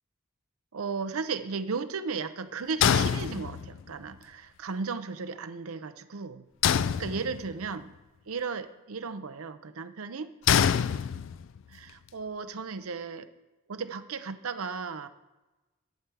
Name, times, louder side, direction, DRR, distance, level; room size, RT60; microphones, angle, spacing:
voice 1, 0.7-6.5 7.0-7.9 8.3-10.3 11.7-13.3 13.7-15.1, right 5 dB, 85° right, 10 dB, 0.7 m, -35 dB
sound 1, 2.8-3.9 6.6-7.7 10.5-11.6, left 8 dB, 60° left, 0.3 m, -25 dB
11.0 x 4.6 x 8.2 m, 1.1 s
head